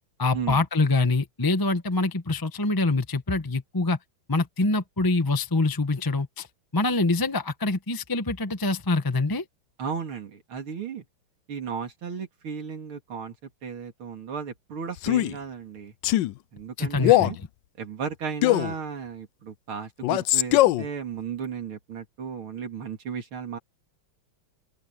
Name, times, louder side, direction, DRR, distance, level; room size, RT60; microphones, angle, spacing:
voice 1, 0.2-4.0 4.3-6.5 6.7-9.4 16.8-17.5, left 3 dB, 15° left, 0.7 m, -25 dB
voice 2, 9.8-11.0 11.5-15.9 16.5-17.4 17.8-23.6, right 6 dB, 75° right, 3.4 m, -35 dB
Male speech man speaking, 15.0-15.4 16.0-16.3 17.0-17.4 18.4-18.7 20.0-20.9, left 16 dB, 75° left, 1.1 m, -20 dB
open air
omnidirectional pair, 2.4 m